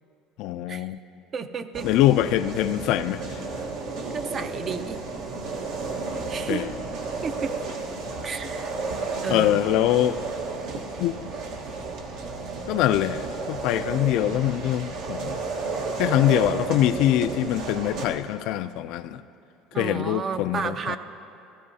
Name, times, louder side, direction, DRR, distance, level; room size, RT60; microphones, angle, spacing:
voice 1, 0.4-1.0 1.8-3.4 6.5-6.7 9.3-10.2 11.0-11.2 12.7-15.4 16.0-19.2 19.8-21.0, left 13 dB, 65° left, 12 dB, 0.3 m, -23 dB
voice 2, 1.3-1.9 4.1-5.0 6.3-6.7 7.2-7.5 8.2-8.7 9.2-9.6 19.7-21.0, right 6 dB, 35° right, 10 dB, 0.5 m, -31 dB
sound 1, 1.7-18.1, right 3 dB, 70° right, 1.3 m, -32 dB
16.0 x 14.0 x 2.8 m, 2.7 s
supercardioid pair, 115°, 0 cm